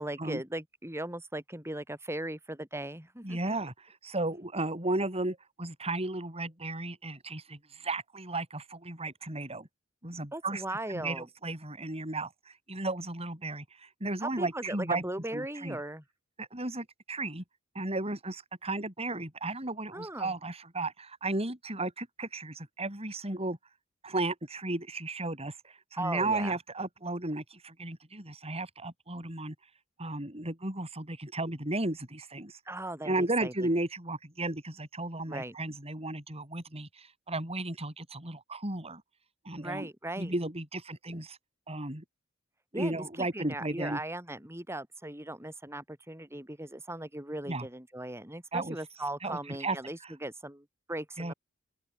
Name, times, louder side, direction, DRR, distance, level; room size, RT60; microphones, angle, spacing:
voice 1, 0.0-3.5 10.3-11.3 14.2-16.0 19.9-20.3 26.0-26.5 32.7-33.5 35.3-35.5 39.6-40.3 42.7-51.3, right 1 dB, 15° right, 8.0 m, -38 dB
voice 2, 3.2-9.7 10.0-10.6 10.9-15.0 15.3-15.8 16.4-17.4 17.7-23.6 24.0-29.5 30.0-32.6 33.0-39.0 39.4-39.9 40.2-41.4 41.7-42.0 42.7-44.0 47.5-47.7 48.5-48.8 49.2-49.8 50.0-50.1 51.2-51.3, right 2 dB, 30° right, 7.8 m, -34 dB
open air
head